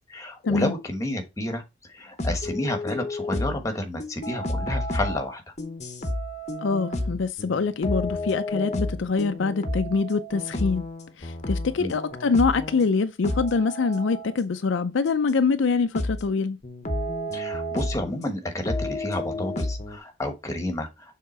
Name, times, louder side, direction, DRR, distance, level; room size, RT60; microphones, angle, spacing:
voice 1, 0.1-1.6 1.9-5.4 11.8-12.0 17.3-21.2, left 1 dB, 15° left, 1.1 m, -30 dB
sound 1, 2.2-3.7 4.0-12.9 13.2-14.3 15.3-15.4 15.9-16.3 16.6-18.3 18.7-20.0, left 1 dB, 35° left, 0.8 m, -31 dB
voice 2, 6.6-10.8 11.2-16.6, left 4 dB, 65° left, 0.4 m, -24 dB
6.7 x 3.6 x 4.3 m
head